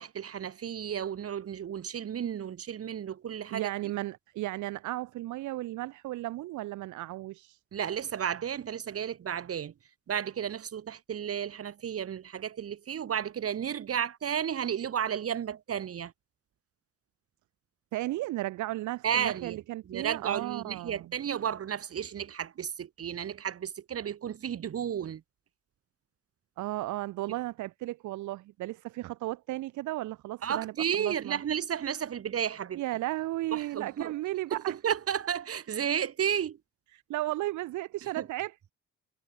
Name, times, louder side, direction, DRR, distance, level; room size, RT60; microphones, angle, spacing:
voice 1, 0.0-3.7 7.7-9.7 10.1-16.1 19.0-19.6 19.9-25.2 30.4-32.8 33.5-34.1 34.5-36.6 38.0-38.3, right 8 dB, 50° right, 1.3 m, -33 dB
voice 2, 3.5-7.6 17.9-21.1 26.6-31.4 32.7-34.8 36.9-38.7, right 17 dB, 75° right, 0.6 m, -35 dB
cardioid pair, 90°, 30 cm